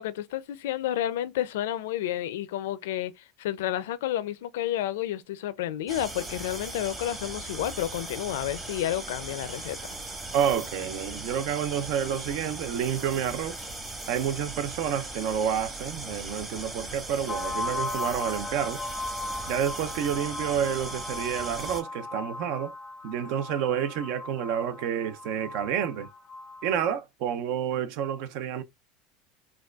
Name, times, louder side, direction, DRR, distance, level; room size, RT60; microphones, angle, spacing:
voice 1, 0.0-9.8, left 12 dB, 85° left, 0.4 m, -31 dB
sound 1, 5.9-21.8, right 2 dB, 20° right, 1.1 m, -39 dB
voice 2, 10.3-13.7 14.1-18.8 19.5-22.7 23.0-26.1 26.6-28.6, right 9 dB, 65° right, 0.5 m, -29 dB
sound 2, 17.3-26.8, left 2 dB, 15° left, 0.4 m, -37 dB
4.5 x 2.3 x 2.3 m
supercardioid pair, 115°, 0 cm